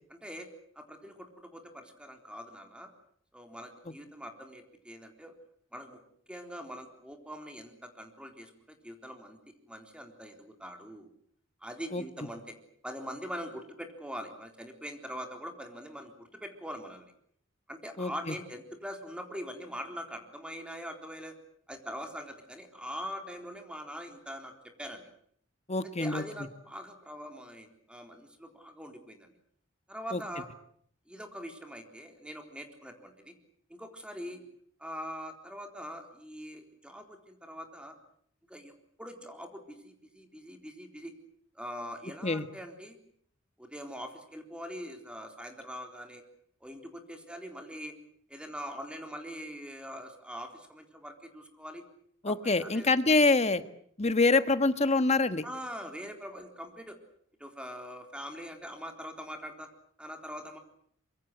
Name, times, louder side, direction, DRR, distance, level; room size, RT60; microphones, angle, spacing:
voice 1, 0.1-0.5 0.8-2.9 3.3-5.3 5.7-6.0 6.3-9.4 9.7-11.1 11.6-12.5 12.8-17.1 17.7-21.3 21.7-24.5 24.8-25.0 26.0-29.3 29.9-30.5 31.1-33.3 33.7-34.4 34.8-37.9 38.5-38.7 39.0-41.1 41.5-43.0 43.6-46.2 46.6-47.9 48.3-51.8 52.3-52.9 55.4-57.0 57.4-59.7 60.0-60.6, equal, 5° right, 5 dB, 3.9 m, -43 dB
voice 2, 11.9-12.3 18.0-18.3 25.7-26.2 30.1-30.2 42.2-42.5 52.2-53.6 54.0-55.4, left 3 dB, 35° left, 12 dB, 1.5 m, -26 dB
25.0 x 23.5 x 8.0 m, 0.63 s
head